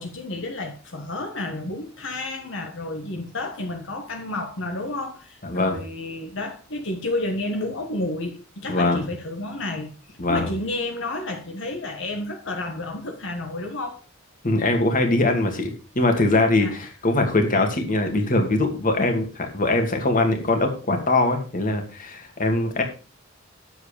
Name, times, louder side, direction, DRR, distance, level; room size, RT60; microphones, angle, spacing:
voice 1, 0.0-14.0 16.6-16.8, left 2 dB, 65° left, 1.6 m, -31 dB
voice 2, 5.4-5.8 8.7-9.0 10.2-10.5 14.4-22.8, left 2 dB, 40° left, 2.3 m, -22 dB
9.6 x 7.9 x 5.1 m
head